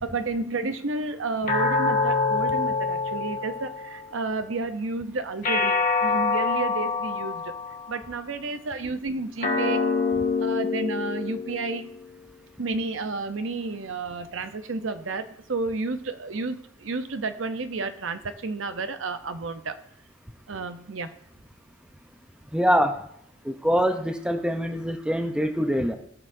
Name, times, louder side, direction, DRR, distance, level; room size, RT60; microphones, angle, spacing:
voice 1, 0.0-7.5 7.9-9.8 10.1-11.9 12.6-19.8 20.5-21.1, right 3 dB, 80° right, 9 dB, 0.7 m, -31 dB
sound 1, 1.5-4.1 5.4-8.0 9.4-12.0, left 4 dB, 40° left, 1.5 m, -26 dB
voice 2, 22.5-22.9 23.5-25.9, equal, 5° right, 6 dB, 0.7 m, -24 dB
19.0 x 6.5 x 2.7 m, 0.69 s
head